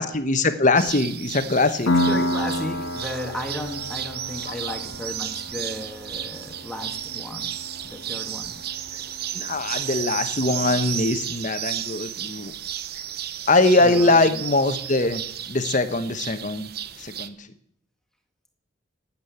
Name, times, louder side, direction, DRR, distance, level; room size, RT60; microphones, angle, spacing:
voice 1, 0.0-1.9 4.5-4.8 9.3-12.5 13.5-15.2 15.5-16.7 17.0-17.3, left 2 dB, 40° left, 10 dB, 1.2 m, -22 dB
sound 1, 0.8-17.3, right 10 dB, 50° right, 0.7 m, -33 dB
Piano, 1.9-9.3, left 1 dB, 85° left, 1.7 m, -30 dB
voice 2, 1.9-7.5 7.8-8.5 13.8-14.2, left 1 dB, 5° left, 4 dB, 1.7 m, -34 dB
12.5 x 8.7 x 9.9 m, 0.67 s
head